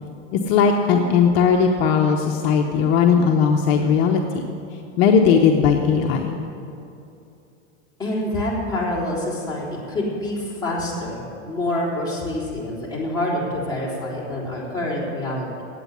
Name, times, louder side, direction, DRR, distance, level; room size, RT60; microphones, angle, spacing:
voice 1, 0.3-4.4 5.0-6.4, left 6 dB, 55° left, 3 dB, 0.9 m, -18 dB
voice 2, 8.0-15.6, left 1 dB, 10° left, -7 dB, 3.8 m, -26 dB
9.2 x 8.9 x 9.6 m, 2.7 s
supercardioid pair, 140°, 36 cm